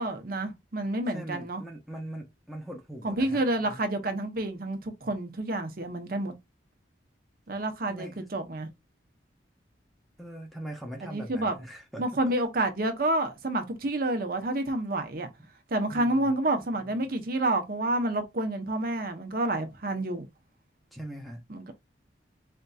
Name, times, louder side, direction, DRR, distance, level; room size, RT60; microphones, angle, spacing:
voice 1, 0.0-1.6 3.0-6.3 7.5-8.7 11.0-11.5 12.0-15.3 15.7-20.3 21.5-21.7, right 1 dB, 50° right, 0.8 m, -29 dB
voice 2, 1.1-3.4 7.8-8.2 10.2-12.3 15.9-16.3 20.9-21.4, right 1 dB, ahead, 0.7 m, -41 dB
4.4 x 2.6 x 2.3 m
head